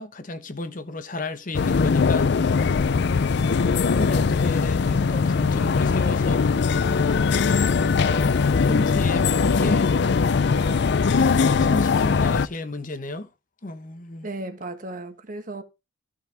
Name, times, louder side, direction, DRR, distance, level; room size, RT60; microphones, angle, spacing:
voice 1, 0.0-2.9 3.8-6.4 7.7-9.9 10.5-13.3 13.6-14.3, left 2 dB, 40° left, 1.0 m, -33 dB
sound 1, 1.5-12.5, left 5 dB, 60° left, 0.4 m, -21 dB
voice 2, 14.2-15.6, right 2 dB, 45° right, 1.3 m, -35 dB
14.5 x 5.8 x 3.4 m
head